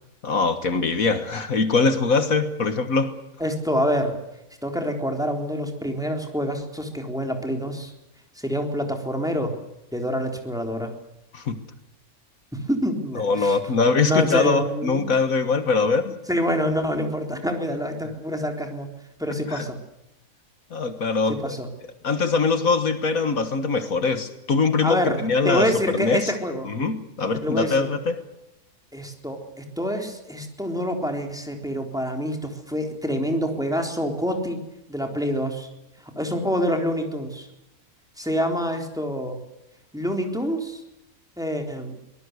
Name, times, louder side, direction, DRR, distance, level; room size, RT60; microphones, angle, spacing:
voice 1, 0.2-3.1 11.3-11.6 13.1-16.1 19.5-19.7 20.7-21.6 22.0-26.3 26.6-28.2, left 4 dB, 70° left, 9 dB, 1.9 m, -22 dB
voice 2, 3.4-4.2 4.6-7.9 8.4-9.5 9.9-10.9 12.5-13.6 14.1-15.2 16.3-18.9 19.2-19.8 21.3-21.7 24.8-26.7 27.4-27.9 28.9-34.6 34.9-35.7 36.2-37.5 38.2-39.4 39.9-40.8 41.4-41.9, equal, ahead, 3 dB, 3.6 m, -26 dB
24.5 x 19.5 x 8.1 m, 0.93 s
omnidirectional pair, 1.5 m